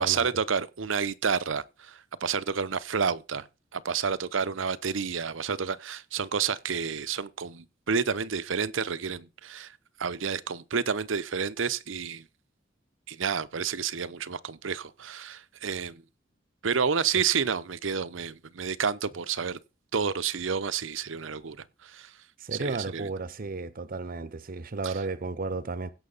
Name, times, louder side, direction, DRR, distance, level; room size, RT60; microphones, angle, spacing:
voice 1, 0.0-3.5 3.7-12.3 13.1-16.0 16.6-19.6 19.9-22.1 22.5-23.1 24.8-24.9, right 6 dB, 85° right, 0.8 m, -30 dB
voice 2, 22.4-25.9, right 3 dB, 50° right, 0.7 m, -33 dB
16.5 x 6.4 x 4.0 m
head